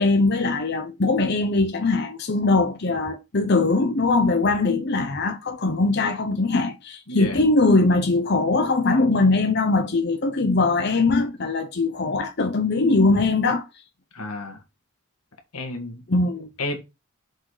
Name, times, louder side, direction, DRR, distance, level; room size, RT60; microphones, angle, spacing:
voice 1, 0.0-13.6 16.1-16.5, left 3 dB, 50° left, 0.7 m, -21 dB
voice 2, 7.1-7.4 14.1-14.6 15.5-16.0 16.6-16.8, left 1 dB, 90° left, 1.7 m, -31 dB
6.3 x 4.0 x 4.9 m
head